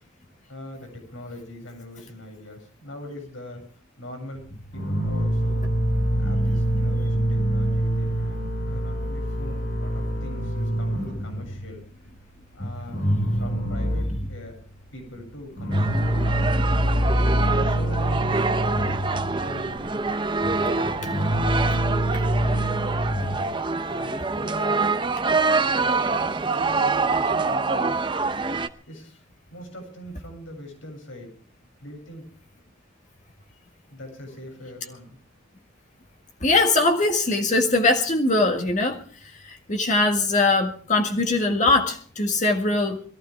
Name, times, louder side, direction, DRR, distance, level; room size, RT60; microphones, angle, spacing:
voice 1, 0.5-3.6 4.0-4.4 4.7-5.7 6.2-11.8 12.5-13.0 13.4-14.6 14.9-16.4 17.0-19.9 20.5-22.0 23.9-25.0 25.7-28.1 28.9-29.2 29.5-31.3 31.8-32.2 33.9-35.2, left 1 dB, 75° left, 7.2 m, -41 dB
sound 1, 4.4-11.8 12.1-12.2 12.6-14.5 15.0-23.5, right 1 dB, 55° left, 2.5 m, -25 dB
sound 2, 15.7-28.7, right 3 dB, 25° right, 0.7 m, -25 dB
voice 2, 36.4-39.0 39.3-43.0, left 2 dB, 35° left, 1.9 m, -21 dB
22.5 x 15.0 x 3.5 m
head